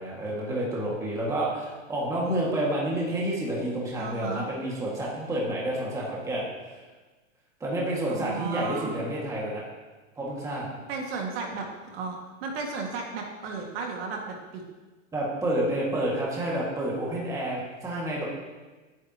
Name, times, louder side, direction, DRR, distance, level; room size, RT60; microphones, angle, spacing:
voice 1, 0.0-6.8 7.6-9.6 10.2-10.7 15.1-18.2, right 1 dB, 10° right, -5 dB, 2.0 m, -29 dB
voice 2, 4.0-4.5 8.1-9.0 10.9-14.6, right 4 dB, 45° right, 0 dB, 2.0 m, -34 dB
17.0 x 9.3 x 3.0 m, 1.3 s
supercardioid pair, 160°, 40 cm